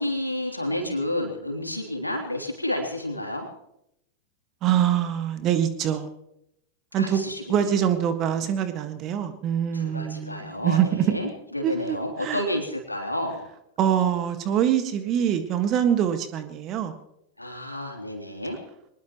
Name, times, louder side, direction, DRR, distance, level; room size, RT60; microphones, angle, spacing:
voice 1, 0.0-3.5 7.0-7.7 9.7-10.8 11.0-13.4 17.4-18.6, left 1 dB, 85° left, 2 dB, 3.1 m, -30 dB
voice 2, 4.6-6.1 6.9-7.2 7.5-11.2 11.6-12.4 13.8-16.9, right 9 dB, 35° right, 9 dB, 1.7 m, -24 dB
23.5 x 20.0 x 3.1 m, 0.81 s
figure-of-eight pair, 90°, 0 cm